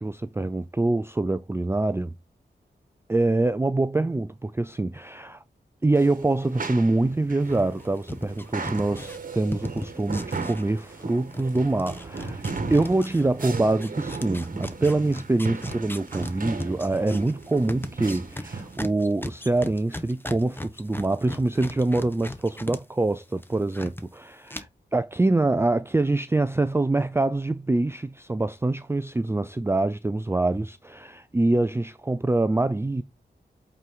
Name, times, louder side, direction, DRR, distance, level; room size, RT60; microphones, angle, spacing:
voice 1, 0.0-2.1 3.1-5.4 5.8-12.4 12.7-24.7 24.9-33.0, right 2 dB, 15° right, 0.4 m, -25 dB
sound 1, 5.9-18.8, right 4 dB, 50° right, 1.3 m, -36 dB
sound 2, 7.5-11.0 11.3-22.8 23.1-24.0 24.5-24.6, left 1 dB, 10° left, 1.2 m, -37 dB
8.3 x 4.6 x 3.8 m
wide cardioid pair, 100°, 18 cm